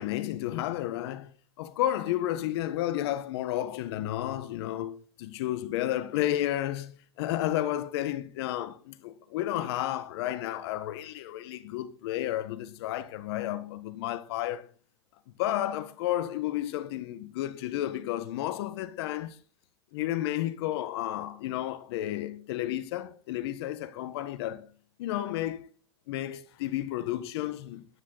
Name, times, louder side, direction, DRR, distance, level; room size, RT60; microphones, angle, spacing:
voice 1, 0.0-14.7 15.4-19.4 19.9-24.7 25.0-25.7 26.1-27.9, left 13 dB, 70° left, 1.5 m, -32 dB
14.0 x 10.5 x 4.1 m
supercardioid pair, 120°, 14 cm